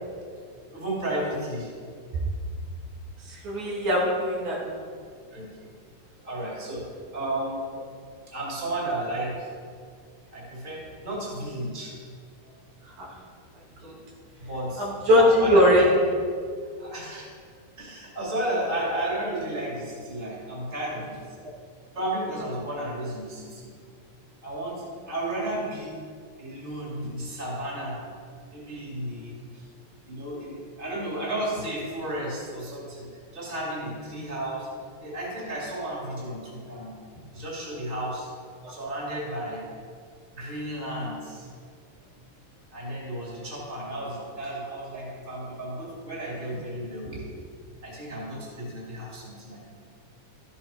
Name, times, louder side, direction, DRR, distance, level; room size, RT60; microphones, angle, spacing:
voice 1, 0.7-1.7 5.3-5.7 6.2-6.9 7.1-7.6 8.3-9.5 10.3-12.0 13.8-14.0 14.4-14.9 15.2-15.9 16.8-17.3 17.8-21.2 21.9-23.7 24.4-26.0 26.4-28.0 28.5-29.6 30.0-34.7 35.0-38.3 38.7-39.6 40.3-41.5 42.7-47.2 47.8-49.6, right 1 dB, 15° right, -4 dB, 2.5 m, -33 dB
voice 2, 3.3-4.8 13.0-13.1 13.8-14.0 14.8-15.8 38.6-38.7, left 1 dB, 70° right, -4 dB, 3.1 m, -21 dB
13.0 x 7.7 x 4.4 m, 2.1 s
omnidirectional pair, 3.6 m